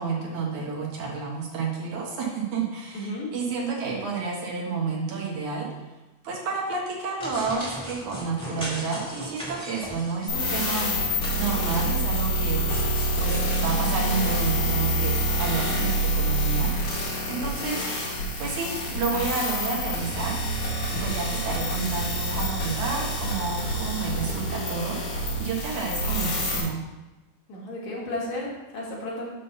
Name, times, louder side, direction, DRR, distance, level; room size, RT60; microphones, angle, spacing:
voice 1, 0.0-5.7 6.2-12.6 13.2-17.9 18.4-20.4 20.9-26.8, right 4 dB, 70° right, -2 dB, 2.7 m, -30 dB
voice 2, 2.9-3.3 17.6-17.8 27.5-28.5 28.7-29.3, left 1 dB, 65° left, -4 dB, 2.9 m, -33 dB
sound 1, 7.2-10.7 11.0-13.1, equal, ahead, 1.5 m, -38 dB
sound 2, 10.3-26.6, right 1 dB, 80° left, 3.2 m, -27 dB
7.4 x 3.8 x 6.6 m, 1.0 s
omnidirectional pair, 3.6 m